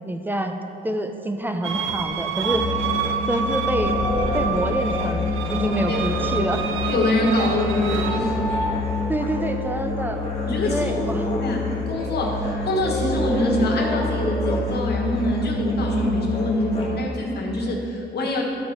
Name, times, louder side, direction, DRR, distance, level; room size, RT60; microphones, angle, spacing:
voice 1, 0.0-0.6 0.8-2.7 3.3-4.0 4.3-6.7 9.1-10.2 10.6-11.3, right 1 dB, 10° right, 6 dB, 0.6 m, -26 dB
sound 1, 1.6-8.2, right 7 dB, 85° right, 0.5 m, -28 dB
Musical instrument, 2.4-17.2, left 3 dB, 25° left, 1.8 m, -27 dB
sound 2, 3.1-14.4, equal, 40° right, 2.0 m, -32 dB
voice 2, 5.5-6.0 6.8-8.4 10.4-10.9 11.4-18.4, left 1 dB, 55° left, -1 dB, 1.5 m, -25 dB
12.5 x 4.1 x 4.5 m, 2.8 s
cardioid pair, 90°, 20 cm